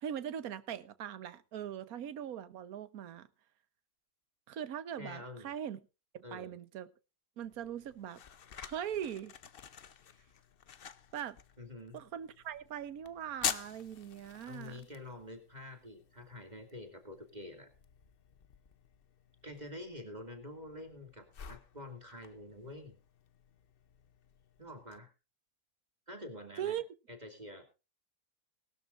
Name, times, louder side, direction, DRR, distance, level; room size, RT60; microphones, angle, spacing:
voice 1, 0.0-3.3 4.5-5.8 6.1-6.9 7.4-8.2 8.6-9.3 11.1-11.4 11.9-14.9 26.6-26.8, right 9 dB, 70° right, 14 dB, 1.4 m, -41 dB
voice 2, 5.0-5.6 6.2-6.6 11.6-12.0 14.5-17.7 19.4-23.0 24.6-25.1 26.1-26.8 27.1-27.7, left 1 dB, 25° right, 6 dB, 2.5 m, -47 dB
match strike, 7.4-25.0, left 8 dB, 50° left, 0.8 m, -47 dB
20.0 x 12.5 x 2.5 m, 0.30 s
omnidirectional pair, 1.6 m